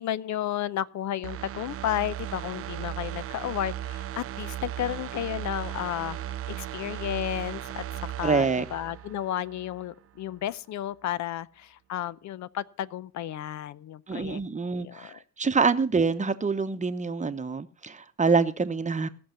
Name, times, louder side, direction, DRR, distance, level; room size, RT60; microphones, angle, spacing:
voice 1, 0.0-8.5 8.7-15.2, left 11 dB, 70° left, 18 dB, 0.6 m, -33 dB
sound 1, 1.2-9.9 10.3-10.4, right 12 dB, 50° right, 0.5 m, -37 dB
voice 2, 8.2-8.7 14.1-19.1, right 4 dB, 25° right, 10 dB, 0.9 m, -26 dB
17.5 x 6.2 x 5.6 m, 0.42 s
cardioid pair, 90°, 30 cm